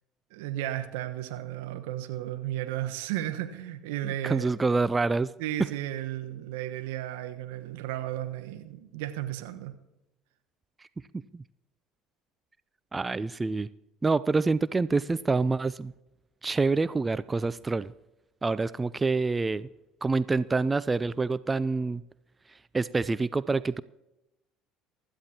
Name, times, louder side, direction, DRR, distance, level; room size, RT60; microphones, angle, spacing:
voice 1, 0.3-4.5 5.1-9.7, right 13 dB, 70° right, 7 dB, 1.2 m, -34 dB
voice 2, 4.2-5.3 11.3-11.4 12.9-13.7 14.0-15.9 16.4-17.9 18.4-19.7 20.0-22.0 22.7-23.8, right 3 dB, 20° right, 17 dB, 0.4 m, -26 dB
24.0 x 13.0 x 2.9 m, 0.94 s
hypercardioid pair, 65°, 0 cm